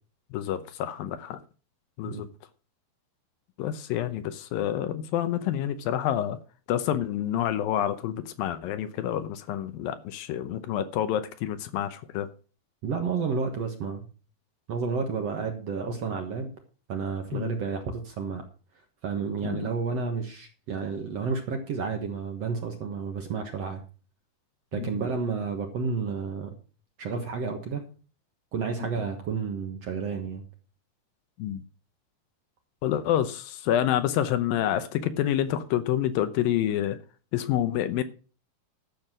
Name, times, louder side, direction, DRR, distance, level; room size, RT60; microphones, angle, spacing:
voice 1, 0.3-1.4 2.0-2.3 3.6-6.4 6.7-12.3 17.3-17.5 19.4-19.7 24.8-25.0 31.4-31.6 32.8-37.0 37.3-38.0, left 11 dB, 75° left, 2.4 m, -28 dB
voice 2, 12.8-14.1 14.7-16.5 16.9-18.4 19.0-23.8 24.7-26.6 27.0-27.8 28.5-30.4, right 5 dB, 55° right, 1.9 m, -31 dB
12.0 x 7.2 x 6.0 m
omnidirectional pair, 4.4 m